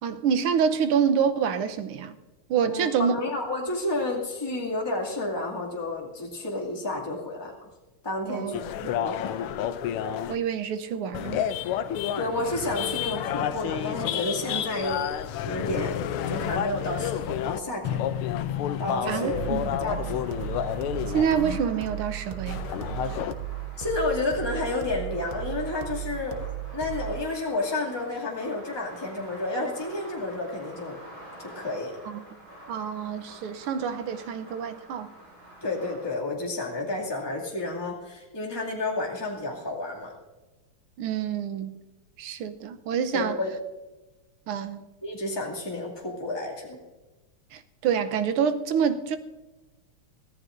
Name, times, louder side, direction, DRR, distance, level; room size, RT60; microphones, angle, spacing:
voice 1, 0.0-2.1 2.5-3.1 8.3-8.5 10.3-11.5 19.1-19.6 21.1-22.6 32.1-32.2 32.7-35.1 41.0-41.8 42.2-43.3 44.5-44.9 47.5-49.2, right 7 dB, 90° right, 1.7 m, -27 dB
voice 2, 2.6-7.7 8.0-9.6 12.2-15.1 15.4-18.1 18.8-19.4 19.8-20.1 23.8-31.0 31.4-31.9 35.6-40.1 43.1-43.5 45.0-46.8, left 2 dB, 10° left, 2.3 m, -31 dB
sound 1, 8.5-10.4 11.1-17.6 17.8-21.6 22.5-23.3, left 10 dB, 90° left, 1.6 m, -30 dB
sound 2, 18.5-36.1, right 1 dB, 70° right, 6.6 m, -48 dB
sound 3, 19.3-27.3, right 13 dB, 50° right, 0.6 m, -36 dB
23.5 x 15.0 x 2.6 m
omnidirectional pair, 2.3 m